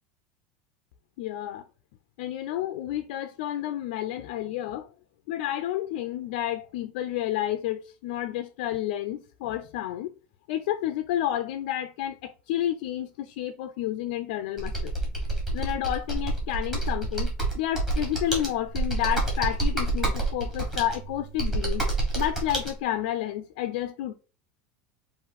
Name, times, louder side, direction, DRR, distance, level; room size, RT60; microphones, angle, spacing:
voice 1, 1.2-1.6 2.2-4.9 5.3-10.1 10.5-14.9 15.5-21.9 22.1-24.1, left 12 dB, 65° left, 0.4 m, -30 dB
Computer keyboard, 14.6-22.7, right 2 dB, 5° right, 1.4 m, -28 dB
4.9 x 2.5 x 4.0 m
supercardioid pair, 175°, 5 cm